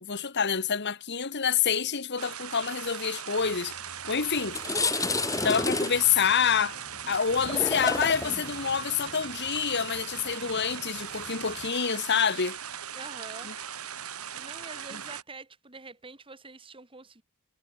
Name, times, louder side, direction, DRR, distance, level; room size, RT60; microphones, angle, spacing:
voice 1, 0.0-3.8 4.1-4.6 5.4-6.8 7.0-12.6, left 7 dB, 50° left, 1.6 m, -27 dB
sound 1, 2.2-15.2, right 8 dB, 90° right, 5.7 m, -39 dB
sound 2, 3.9-4.0 4.4-11.7, left 3 dB, 15° left, 1.8 m, -32 dB
voice 2, 12.9-13.5 14.3-17.2, right 3 dB, 25° right, 2.6 m, -45 dB
head